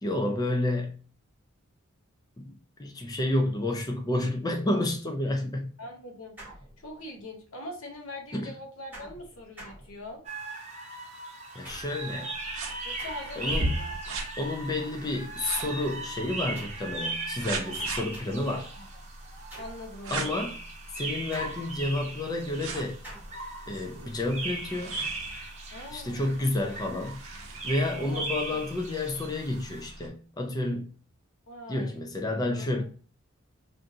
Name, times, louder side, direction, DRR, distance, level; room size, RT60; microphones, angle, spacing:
voice 1, 0.0-0.9 2.4-5.7 8.3-8.5 11.5-12.3 13.4-13.8 14.4-18.7 20.1-20.6 20.9-23.0 23.7-25.0 25.9-27.2 27.6-30.9 31.7-32.8, left 1 dB, 20° left, 0.4 m, -30 dB
voice 2, 5.8-6.4 6.8-10.2 12.8-13.9 18.8-18.9 19.6-20.5 25.7-26.3 27.9-28.2 28.5-28.7 31.5-32.0 32.4-32.7, left 1 dB, 85° left, 1.0 m, -42 dB
sound 1, 6.4-7.2 8.9-10.4 11.6-12.2 13.0-13.6 15.6-16.0 16.6-17.0 17.7-18.5 19.5-19.9 21.3-22.0 23.0-23.5, right 1 dB, 10° right, 1.0 m, -47 dB
sound 2, 10.2-29.9, right 2 dB, 35° right, 0.8 m, -38 dB
sound 3, 12.3-30.1, right 2 dB, 85° right, 0.7 m, -40 dB
3.5 x 2.6 x 2.6 m
head